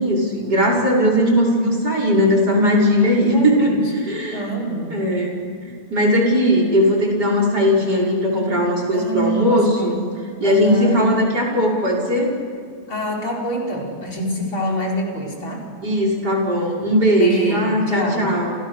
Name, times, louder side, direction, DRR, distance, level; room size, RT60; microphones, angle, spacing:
voice 1, 0.0-4.4 4.9-10.0 10.4-12.3 15.8-18.5, equal, 30° right, 0 dB, 6.4 m, -18 dB
voice 2, 3.0-3.9 4.3-5.1 8.9-11.0 12.9-15.7 17.2-18.3, right 1 dB, 40° left, -2 dB, 6.0 m, -26 dB
29.5 x 29.0 x 6.7 m, 2.3 s
omnidirectional pair, 3.4 m